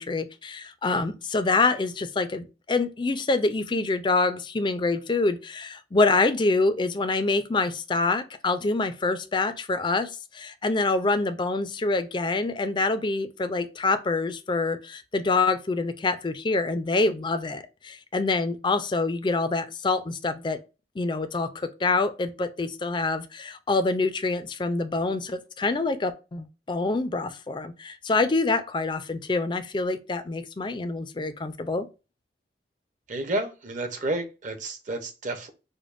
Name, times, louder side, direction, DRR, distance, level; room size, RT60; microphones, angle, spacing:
voice 1, 0.0-20.6 21.0-31.9, left 3 dB, 25° left, 0.4 m, -26 dB
voice 2, 33.1-35.5, right 2 dB, 45° right, 0.8 m, -31 dB
5.1 x 2.1 x 2.5 m
head